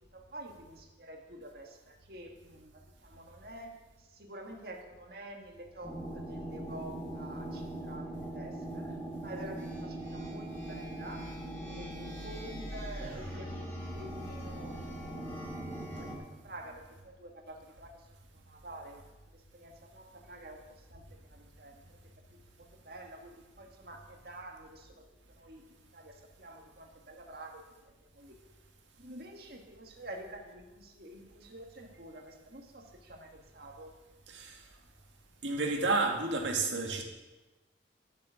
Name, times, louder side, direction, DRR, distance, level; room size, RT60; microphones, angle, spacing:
voice 1, 0.1-16.1 16.4-18.1 18.3-19.0 19.3-25.1 25.4-28.4 29.0-33.9, right 1 dB, 55° right, 2 dB, 1.9 m, -49 dB
sound 1, 5.8-16.2, right 1 dB, 10° left, 3.2 m, -41 dB
voice 2, 34.3-34.6 35.4-37.0, right 3 dB, 90° right, 2 dB, 2.0 m, -30 dB
12.5 x 7.9 x 6.4 m, 1.1 s
head